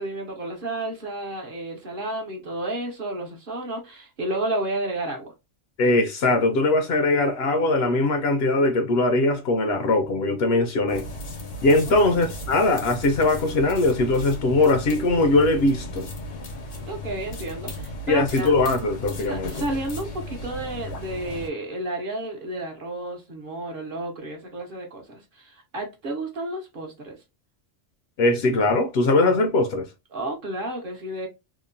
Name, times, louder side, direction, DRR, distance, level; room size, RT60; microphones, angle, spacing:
voice 1, 0.0-5.3 11.9-12.2 16.9-18.5 19.2-27.2 30.1-31.3, right 1 dB, 50° right, 0.9 m, -31 dB
voice 2, 5.8-11.1 11.6-16.1 18.1-19.5 28.2-29.9, left 2 dB, 65° left, 0.7 m, -21 dB
sound 1, 10.9-21.5, left 1 dB, 85° left, 1.2 m, -35 dB
2.9 x 2.1 x 2.5 m
omnidirectional pair, 1.2 m